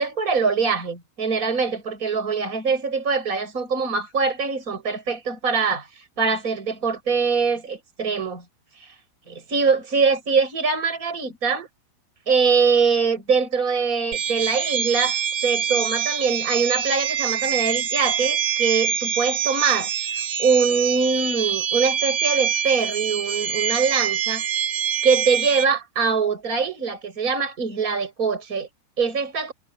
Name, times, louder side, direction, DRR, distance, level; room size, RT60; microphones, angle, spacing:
voice 1, 0.0-5.9 6.2-8.4 9.3-11.7 12.3-20.1 20.4-24.4 25.0-28.7 29.0-29.5, right 5 dB, 15° right, 7.6 m, -23 dB
sound 1, 14.1-25.6, right 8 dB, 55° right, 2.5 m, -25 dB
omnidirectional pair, 5.4 m